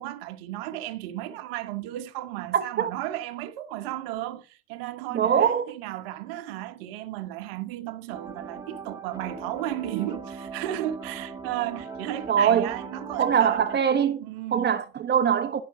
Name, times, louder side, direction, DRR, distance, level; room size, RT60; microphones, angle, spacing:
voice 1, 0.0-13.6 14.2-14.7, right 13 dB, 70° right, 1.1 m, -34 dB
voice 2, 2.5-2.9 5.1-5.7 12.3-12.7 13.2-14.2 14.5-15.6, right 8 dB, 35° right, 1.0 m, -22 dB
sound 1, 8.1-13.8, right 4 dB, 10° right, 1.9 m, -40 dB
11.5 x 6.0 x 4.6 m
hypercardioid pair, 75°, 30 cm